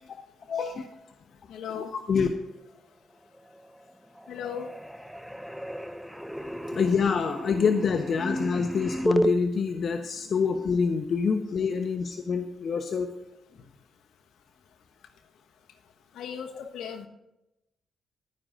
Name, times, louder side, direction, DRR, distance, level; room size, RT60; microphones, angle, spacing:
voice 1, 0.5-0.9 1.7-2.3 6.7-13.1, left 5 dB, 55° left, 6 dB, 1.0 m, -26 dB
voice 2, 1.5-1.9 4.3-4.7 16.1-17.1, left 8 dB, 70° left, 5 dB, 1.3 m, -36 dB
sound 1, 3.3-3.9 4.2-9.3, right 1 dB, ahead, 0.8 m, -32 dB
22.0 x 9.8 x 2.6 m, 0.93 s
hypercardioid pair, 45°, 0 cm